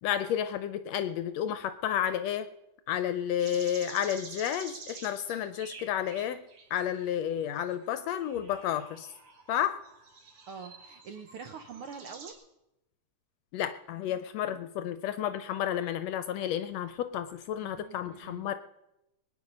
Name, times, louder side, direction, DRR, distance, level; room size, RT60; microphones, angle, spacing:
voice 1, 0.0-2.5 2.9-6.4 6.7-9.1 9.5-9.8 13.5-18.5, left 10 dB, 75° left, 11 dB, 1.7 m, -31 dB
sound 1, 3.4-7.1 7.7-12.3, right 4 dB, 50° right, 2.7 m, -48 dB
voice 2, 10.5-12.4 17.6-18.5, right 5 dB, 70° right, 8 dB, 1.3 m, -45 dB
21.0 x 9.8 x 5.4 m, 0.89 s
omnidirectional pair, 3.3 m